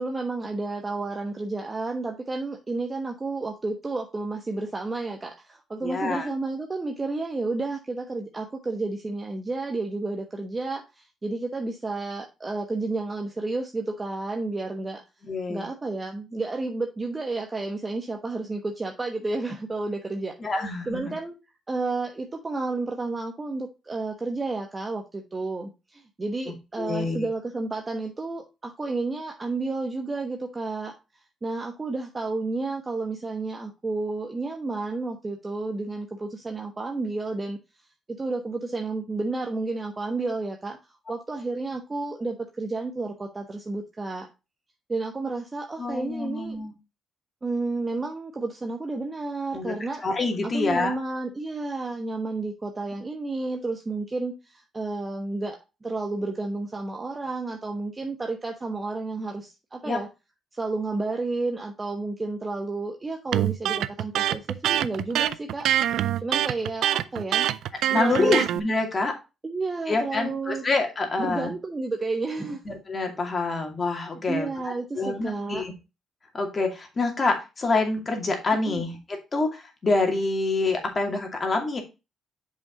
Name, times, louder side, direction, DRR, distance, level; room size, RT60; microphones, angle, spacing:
voice 1, 0.0-15.0 15.5-21.4 21.7-37.6 38.1-40.8 41.1-44.3 44.9-46.6 47.4-50.0 50.4-60.1 60.5-67.5 68.0-68.4 69.4-70.6 71.2-72.6 74.3-75.6 78.7-78.8, right 3 dB, 25° right, 3 dB, 1.1 m, -31 dB
voice 2, 5.8-6.3 15.3-15.7 20.4-21.2 26.5-27.3 45.8-46.7 49.5-49.7 50.0-51.0 59.8-60.0 67.9-69.1 69.9-71.5 72.7-75.7 76.3-81.8, left 3 dB, 35° left, 3 dB, 2.4 m, -27 dB
Electric guitar, 63.3-68.6, right 12 dB, 80° right, 0.4 m, -24 dB
7.0 x 5.3 x 3.8 m, 0.27 s
cardioid pair, 90°, 0 cm